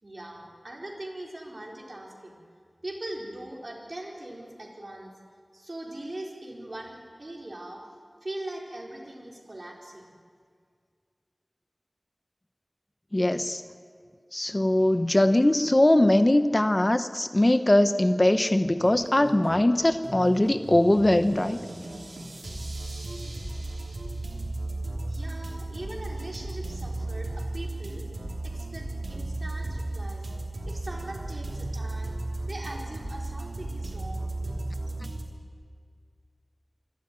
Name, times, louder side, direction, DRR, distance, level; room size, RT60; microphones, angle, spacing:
voice 1, 0.0-2.4 2.8-5.1 5.5-7.8 8.2-10.1 25.1-30.3 30.7-32.2 32.4-34.3, right 1 dB, 55° right, -1 dB, 4.5 m, -41 dB
voice 2, 13.1-13.6 14.3-21.6, left 1 dB, 35° left, 10 dB, 0.9 m, -21 dB
sound 1, 18.6-35.2, right 2 dB, 85° right, 3.2 m, -35 dB
26.0 x 12.5 x 9.5 m, 2.1 s
wide cardioid pair, 40°, 0 cm